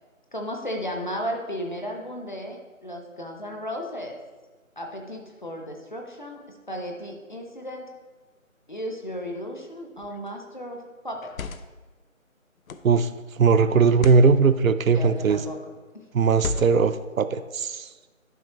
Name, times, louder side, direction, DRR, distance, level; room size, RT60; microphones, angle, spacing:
voice 1, 0.3-4.2 4.8-7.9 8.7-11.3 14.9-15.6, equal, 35° left, 2 dB, 0.8 m, -34 dB
sound 1, 10.0-10.3 11.1-11.9 12.7-13.0 13.9-14.3 15.2-15.6 16.3-17.0, left 4 dB, 85° left, 0.6 m, -34 dB
voice 2, 13.4-15.4 16.1-17.9, right 5 dB, 80° right, 12 dB, 0.5 m, -19 dB
11.0 x 5.3 x 3.0 m, 1.3 s
figure-of-eight pair, 175°, 40 cm